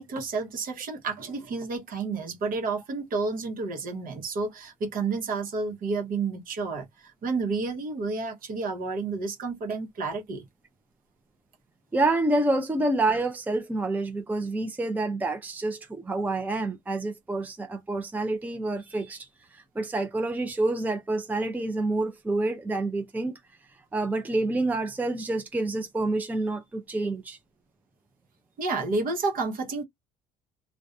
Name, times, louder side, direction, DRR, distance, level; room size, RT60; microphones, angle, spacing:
voice 1, 0.0-10.4 28.6-29.8, right 4 dB, 55° right, 0.9 m, -30 dB
voice 2, 11.9-23.4 23.9-27.4, right 2 dB, 10° right, 0.5 m, -28 dB
2.5 x 2.1 x 2.3 m
cardioid pair, 110°, 17 cm